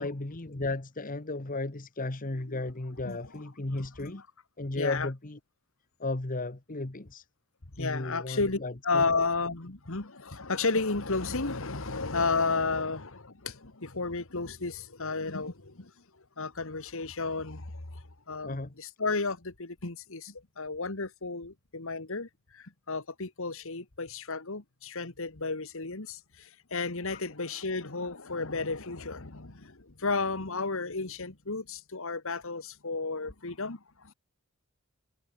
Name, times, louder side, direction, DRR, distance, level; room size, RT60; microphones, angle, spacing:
voice 1, 0.0-4.2 4.6-5.4 6.0-7.2 7.8-9.0 18.4-18.7 27.1-27.2, left 2 dB, 40° left, 1.3 m, -34 dB
voice 2, 4.8-5.1 7.8-8.6 8.8-15.9 16.4-34.1, left 3 dB, 65° left, 2.0 m, -33 dB
head